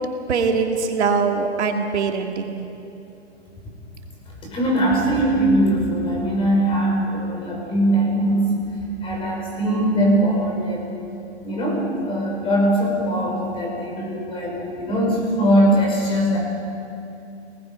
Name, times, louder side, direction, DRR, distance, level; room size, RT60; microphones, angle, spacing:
voice 1, 0.3-2.6, right 5 dB, 75° right, 3 dB, 2.4 m, -22 dB
voice 2, 4.5-8.5 9.0-11.0 11.4-16.4, right 1 dB, 15° left, -2 dB, 5.3 m, -21 dB
29.0 x 19.5 x 5.3 m, 2.7 s
hypercardioid pair, 155°, 34 cm